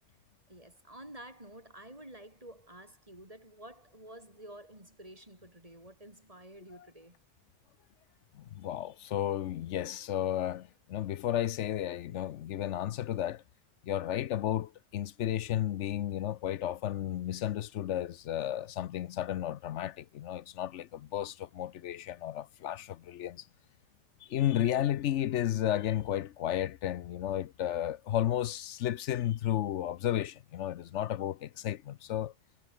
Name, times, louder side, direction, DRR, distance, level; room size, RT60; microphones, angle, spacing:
voice 1, 0.5-7.2, right 1 dB, 30° right, 5.6 m, -50 dB
voice 2, 8.4-13.4 13.8-23.4 24.3-32.3, left 11 dB, 85° left, 1.0 m, -33 dB
omnidirectional pair, 1.2 m